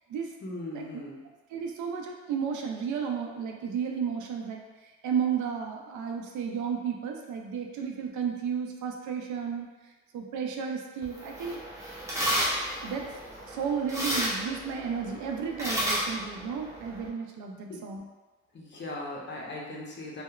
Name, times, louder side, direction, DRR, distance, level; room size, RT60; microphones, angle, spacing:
voice 1, 0.4-1.2 17.7-17.8 18.5-20.2, left 2 dB, 40° left, -3 dB, 0.6 m, -39 dB
voice 2, 1.5-9.7 10.1-11.6 12.8-13.0 13.5-18.1, right 7 dB, 75° right, 2 dB, 0.4 m, -33 dB
sound 1, 11.0-17.1, equal, 10° right, 0.7 m, -32 dB
2.8 x 2.0 x 2.3 m, 1.2 s
cardioid pair, 90°, 30 cm